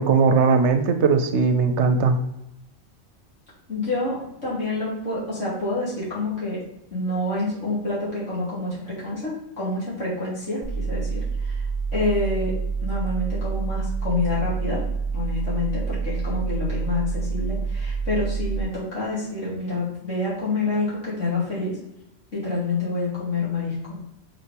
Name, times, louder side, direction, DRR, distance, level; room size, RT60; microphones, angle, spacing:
voice 1, 0.0-2.2, right 5 dB, 70° right, 8 dB, 0.9 m, -19 dB
voice 2, 3.7-6.6 6.9-11.7 11.9-12.5 12.8-14.8 15.1-21.8 22.3-24.0, left 2 dB, 80° left, -8 dB, 3.3 m, -27 dB
sound 1, 10.6-18.6, right 5 dB, 10° left, 0.9 m, -27 dB
5.9 x 4.3 x 5.0 m, 0.84 s
omnidirectional pair, 1.3 m